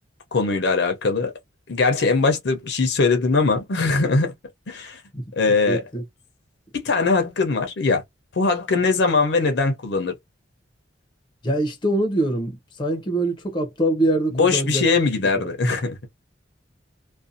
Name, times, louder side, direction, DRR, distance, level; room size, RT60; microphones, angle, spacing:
voice 1, 0.3-1.3 1.7-4.3 4.7-5.0 5.4-5.8 6.8-8.0 8.4-10.1 14.3-16.0, left 4 dB, 65° left, 0.6 m, -21 dB
voice 2, 5.7-6.0 11.4-14.8 15.4-15.5, right 1 dB, 25° left, 0.6 m, -24 dB
2.5 x 2.2 x 2.6 m
head